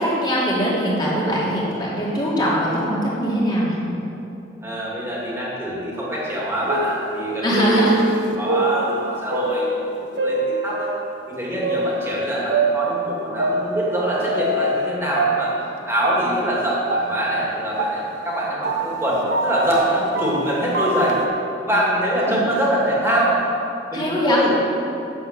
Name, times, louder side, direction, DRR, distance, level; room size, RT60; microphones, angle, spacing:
voice 1, 0.0-3.8 7.4-8.0 22.3-22.4 23.9-24.4, equal, 25° left, -7 dB, 3.0 m, -21 dB
voice 2, 4.6-8.0 8.3-9.7 10.1-10.9 11.3-21.2 21.6-23.4 23.9-24.6, right 1 dB, 15° right, -6 dB, 2.7 m, -24 dB
sound 1, 6.3-11.1 11.6-14.9 15.1-21.3, right 2 dB, 80° right, 1.1 m, -25 dB
9.8 x 7.6 x 7.6 m, 2.8 s
head